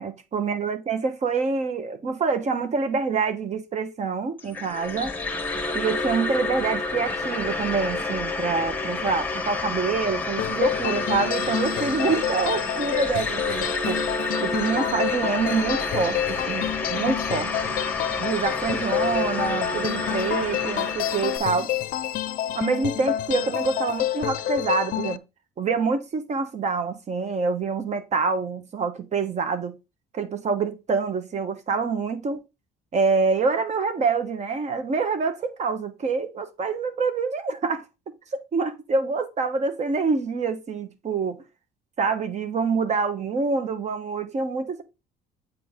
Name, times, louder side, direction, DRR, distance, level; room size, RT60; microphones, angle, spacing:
voice 1, 0.0-5.1 5.7-14.0 14.4-17.6 18.2-21.7 22.5-25.2 25.6-29.8 30.1-32.4 32.9-37.8 38.3-41.4 42.0-44.8, right 4 dB, 45° right, 1.2 m, -26 dB
sound 1, 4.4-21.4, left 3 dB, 10° left, 1.5 m, -29 dB
sound 2, 10.4-25.2, left 12 dB, 55° left, 0.5 m, -29 dB
8.4 x 4.0 x 3.7 m
cardioid pair, 110°, 17 cm